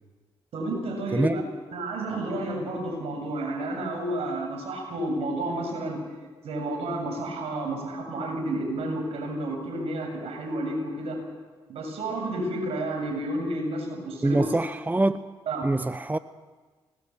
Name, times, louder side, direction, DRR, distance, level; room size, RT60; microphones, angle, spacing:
voice 1, 0.5-1.4 1.7-6.0 6.4-11.2 11.7-14.5 15.5-15.7, right 1 dB, 65° right, 7.4 m, -31 dB
voice 2, 14.2-15.2 15.6-16.2, right 2 dB, 15° right, 0.8 m, -24 dB
24.0 x 20.0 x 7.3 m
hypercardioid pair, 45°, 11 cm